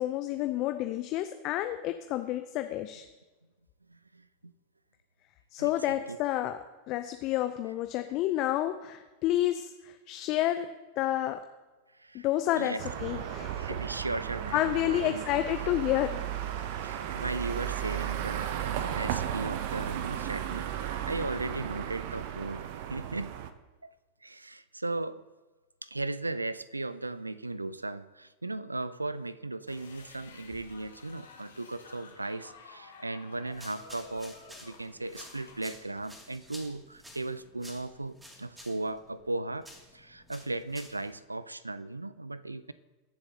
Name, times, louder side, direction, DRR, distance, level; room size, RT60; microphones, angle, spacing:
voice 1, 0.0-3.1 5.5-6.6 6.9-10.7 11.0-11.4 12.1-13.7 14.5-16.3, left 13 dB, 45° left, 8 dB, 0.5 m, -30 dB
voice 2, 3.9-4.5 5.6-6.2 12.0-12.3 12.5-12.8 13.6-15.2 16.8-23.4 23.8-23.9 24.2-25.2 25.8-34.4 34.6-39.7 39.9-42.7, right 2 dB, 90° right, 16 dB, 0.4 m, -37 dB
sound 1, 12.8-23.5, right 10 dB, 55° right, 0.7 m, -35 dB
sound 2, 29.7-35.7, left 4 dB, 75° left, 1.9 m, -52 dB
sound 3, 33.5-41.1, equal, 10° right, 2.5 m, -52 dB
21.5 x 7.2 x 2.8 m, 1.2 s
figure-of-eight pair, 90°, 0 cm